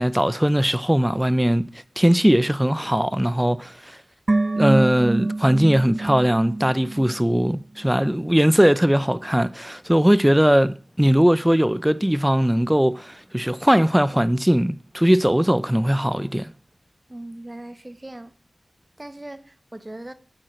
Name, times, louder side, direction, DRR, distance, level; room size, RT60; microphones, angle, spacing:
voice 1, 0.0-1.6 2.0-4.0 4.6-16.5, equal, 10° right, 0.6 m, -19 dB
sound 1, 4.3-7.6 7.8-7.9, right 2 dB, 45° right, 0.9 m, -26 dB
voice 2, 17.1-18.3 19.0-20.1, right 1 dB, 25° right, 1.3 m, -39 dB
8.8 x 7.8 x 8.8 m
wide cardioid pair, 50°, 0 cm